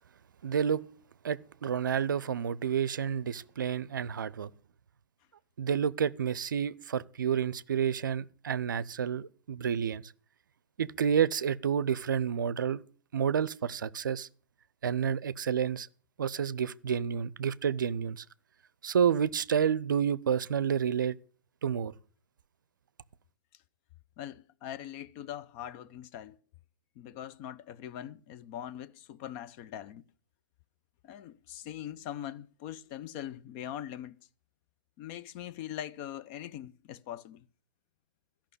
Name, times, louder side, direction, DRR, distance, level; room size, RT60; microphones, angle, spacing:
voice 1, 0.4-0.8 1.2-4.5 5.6-10.1 10.8-12.8 13.1-14.3 14.8-15.9 16.2-18.2 18.8-21.2 21.6-21.9, right 8 dB, 70° right, 0.5 m, -29 dB
voice 2, 24.2-26.4 27.0-30.0 31.0-34.2 35.0-37.5, left 11 dB, 35° left, 0.6 m, -42 dB
13.5 x 5.9 x 8.3 m
figure-of-eight pair, 115°, 11 cm